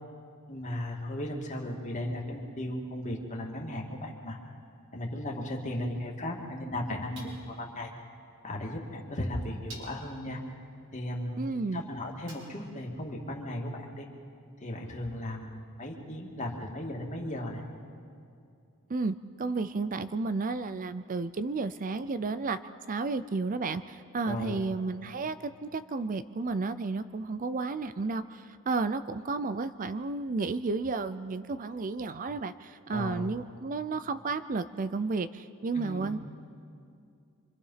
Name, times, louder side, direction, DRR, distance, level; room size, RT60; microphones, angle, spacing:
voice 1, 0.5-4.4 4.9-7.9 8.4-10.4 10.9-14.1 14.6-17.6 24.2-24.6 32.9-33.3 35.7-36.1, left 1 dB, 35° left, 0 dB, 2.5 m, -36 dB
sound 1, 4.6-4.7 7.2-7.7 8.8-8.9 9.7-10.2 12.3-12.8, right 2 dB, 60° right, 4.9 m, -49 dB
voice 2, 11.4-11.8 18.9-22.6 22.9-36.2, right 3 dB, 35° right, 13 dB, 0.5 m, -32 dB
26.0 x 25.5 x 5.7 m, 2.5 s
head